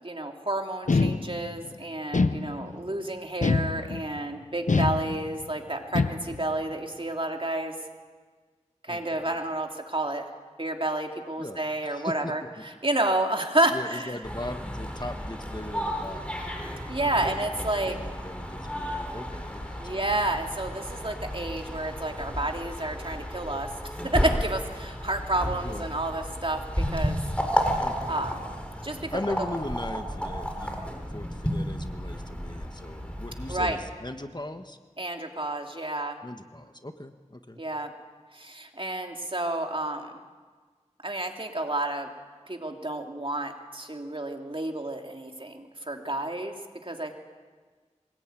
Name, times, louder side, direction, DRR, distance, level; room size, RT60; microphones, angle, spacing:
voice 1, 0.0-7.7 8.8-10.3 10.6-12.4 12.8-14.1 16.9-17.9 19.8-23.7 24.0-27.2 28.1-28.3 28.8-29.2 33.5-33.8 35.0-36.2 37.6-37.9 38.3-40.2 41.0-42.1 42.5-46.6 46.8-47.1, right 1 dB, 45° right, 3 dB, 2.8 m, -30 dB
sound 1, 0.9-1.6 2.1-2.9 3.4-4.2 4.7-5.5 5.9-6.5, left 3 dB, 90° left, 0.8 m, -26 dB
voice 2, 8.9-9.4 11.4-12.7 13.7-16.6 17.0-19.9 25.6-25.9 27.8-28.5 29.1-34.8 36.2-37.6, left 1 dB, 35° left, 7 dB, 1.5 m, -39 dB
sound 2, 14.2-33.7, equal, 10° left, 4.5 m, -33 dB
24.0 x 20.0 x 9.2 m, 1.5 s
wide cardioid pair, 40°, 12 cm